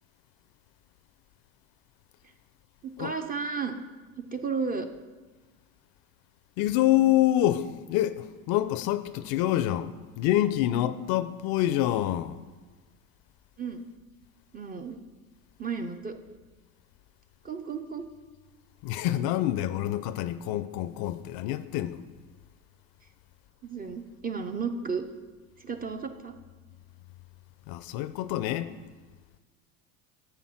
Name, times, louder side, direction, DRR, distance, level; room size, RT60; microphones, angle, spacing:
voice 1, 2.8-3.8 4.2-4.9 13.6-13.8 14.5-15.0 15.6-16.2 17.4-18.1 23.6-25.0 25.6-26.3, right 5 dB, 20° right, 0.4 m, -33 dB
voice 2, 6.6-12.4 18.8-22.0 27.7-28.7, left 13 dB, 50° left, 0.5 m, -26 dB
7.0 x 5.8 x 5.9 m
hypercardioid pair, 85°, 46 cm